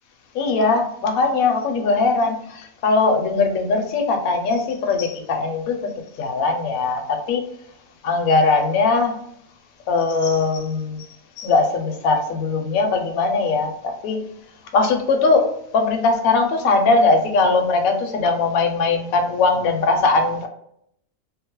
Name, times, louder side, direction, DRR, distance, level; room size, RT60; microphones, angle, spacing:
voice 1, 0.3-5.9 6.2-7.4 8.0-9.2 9.9-11.1 11.4-14.3 14.7-20.5, left 3 dB, 80° left, 4 dB, 1.0 m, -20 dB
2.9 x 2.0 x 2.9 m, 0.72 s
omnidirectional pair, 1.5 m